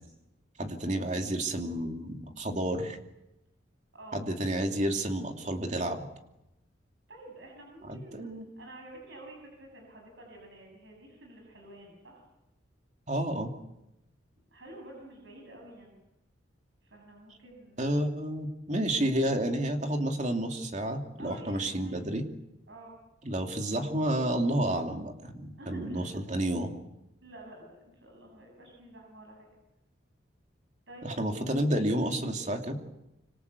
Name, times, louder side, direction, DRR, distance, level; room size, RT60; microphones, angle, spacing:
voice 1, 0.6-3.0 4.1-6.1 7.9-8.4 13.1-13.5 17.8-22.3 23.2-26.7 31.0-32.8, right 1 dB, 40° right, 4 dB, 2.8 m, -30 dB
voice 2, 3.9-4.2 7.1-12.2 14.5-16.0 16.8-18.0 21.2-22.0 22.7-23.0 25.6-26.2 27.2-29.5 30.9-31.1, right 1 dB, 75° right, 1 dB, 7.8 m, -49 dB
26.0 x 26.0 x 8.3 m, 0.91 s
head